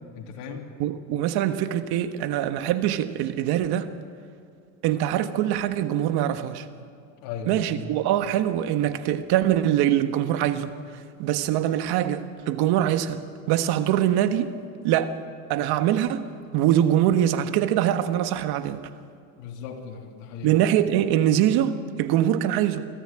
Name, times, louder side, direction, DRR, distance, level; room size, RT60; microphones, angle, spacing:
voice 1, 0.1-0.7 7.2-7.9 19.4-20.5, left 6 dB, 75° left, 3.3 m, -37 dB
voice 2, 0.8-3.9 4.8-6.7 7.5-10.7 11.2-13.2 13.5-14.5 14.8-15.2 15.5-16.2 16.5-18.8 20.4-22.9, right 11 dB, 65° right, 1.5 m, -23 dB
24.5 x 14.5 x 8.9 m
supercardioid pair, 115°, 41 cm